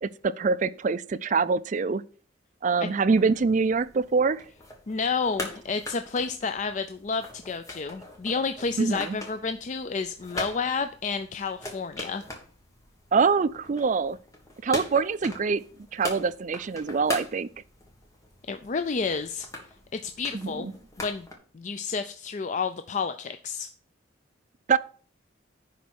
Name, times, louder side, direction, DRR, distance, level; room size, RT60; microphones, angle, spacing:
voice 1, 0.0-2.0 2.6-4.4 8.8-9.2 13.1-14.2 14.6-15.6 15.9-17.5 20.4-20.7 24.7-24.8, right 5 dB, 40° right, 0.4 m, -24 dB
sound 1, 3.1-21.3, left 1 dB, 15° left, 1.6 m, -41 dB
voice 2, 4.9-12.2 18.5-19.5 19.9-20.7 21.0-21.3 21.5-23.7, left 5 dB, 40° left, 0.4 m, -30 dB
10.5 x 4.1 x 6.3 m
head